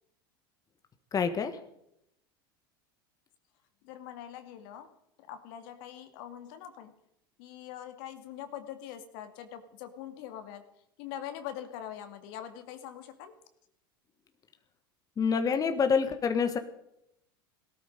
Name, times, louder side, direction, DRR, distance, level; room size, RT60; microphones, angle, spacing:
voice 1, 1.1-1.6 15.2-16.6, left 6 dB, 30° left, 7 dB, 1.5 m, -27 dB
voice 2, 3.9-4.9 5.3-6.9 7.4-10.6 11.0-13.3, left 10 dB, 65° left, 8 dB, 2.1 m, -43 dB
18.0 x 13.0 x 5.3 m, 0.79 s
hypercardioid pair, 95°, 12 cm